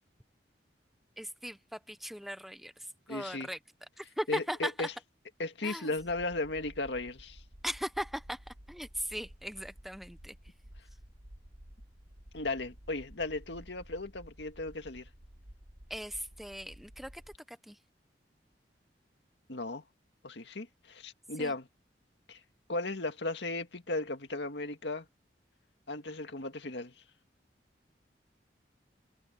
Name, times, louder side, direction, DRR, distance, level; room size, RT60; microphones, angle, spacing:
voice 1, 1.2-2.7 3.1-3.6 4.0-4.9 5.6-5.9 7.6-8.4 8.7-10.3 15.9-17.2 17.5-17.8 21.4-21.5, equal, ahead, 0.6 m, -38 dB
voice 2, 3.1-3.5 4.3-4.9 5.4-7.4 12.3-15.1 19.5-19.8 20.2-21.7 22.3-22.4 22.7-25.1 25.9-26.9, left 2 dB, 75° left, 2.0 m, -36 dB
sound 1, 6.0-17.4, equal, 75° right, 5.4 m, -53 dB
head